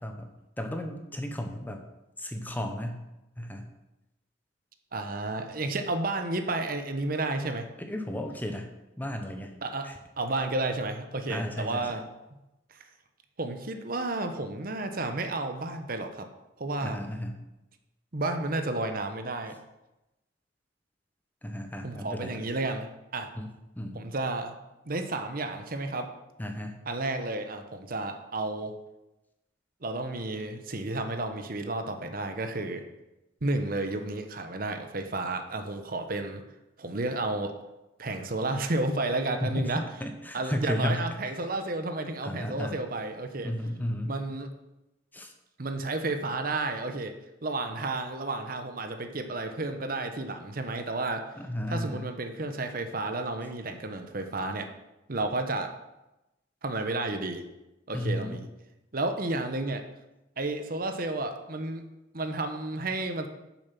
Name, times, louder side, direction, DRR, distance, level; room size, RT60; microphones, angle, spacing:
voice 1, 0.6-1.8 2.2-3.0 3.4-3.7 7.8-8.7 9.0-9.5 9.8-10.0 11.3-12.0 16.8-17.4 21.4-22.4 23.4-23.5 23.8-24.0 26.4-26.8 39.4-39.7 40.0-41.1 42.2-42.8 43.4-44.2 45.1-45.3 51.4-52.1 57.9-58.4, equal, 10° left, 5 dB, 0.9 m, -33 dB
voice 2, 4.9-7.7 9.6-9.9 10.2-12.1 13.4-16.3 16.6-17.0 18.1-19.6 21.8-23.3 23.9-24.5 24.9-26.1 26.9-28.7 29.8-32.8 33.4-36.4 36.8-37.5 38.0-39.8 40.3-43.5 44.0-44.5 45.6-47.1 47.4-51.3 51.7-54.7 55.1-55.7 56.6-57.4 57.9-58.5 58.9-59.9 60.4-61.8 62.1-63.3, right 2 dB, 50° right, 7 dB, 1.0 m, -32 dB
8.7 x 7.3 x 5.9 m, 0.96 s
head